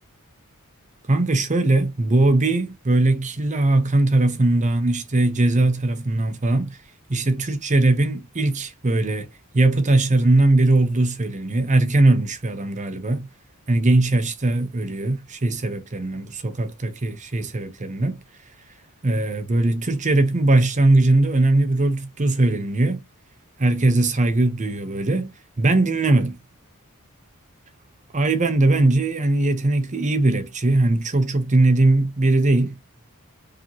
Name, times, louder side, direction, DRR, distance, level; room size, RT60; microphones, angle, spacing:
voice 1, 1.1-6.8 7.1-9.3 9.5-13.3 13.7-18.2 19.0-23.0 23.6-25.3 25.6-26.4 28.1-32.8, right 2 dB, 35° right, 0.7 m, -20 dB
4.8 x 3.0 x 2.8 m
head